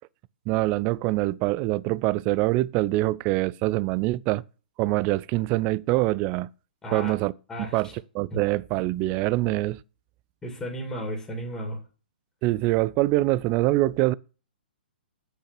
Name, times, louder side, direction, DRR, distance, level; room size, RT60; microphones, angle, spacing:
voice 1, 0.5-4.4 4.8-6.5 6.9-7.3 7.6-9.8 12.4-14.1, right 18 dB, 25° right, 0.3 m, -24 dB
voice 2, 6.8-7.1 7.5-7.9 8.3-8.4 10.4-11.8, equal, 10° left, 2.4 m, -34 dB
7.6 x 6.7 x 6.0 m
figure-of-eight pair, 120°, 5 cm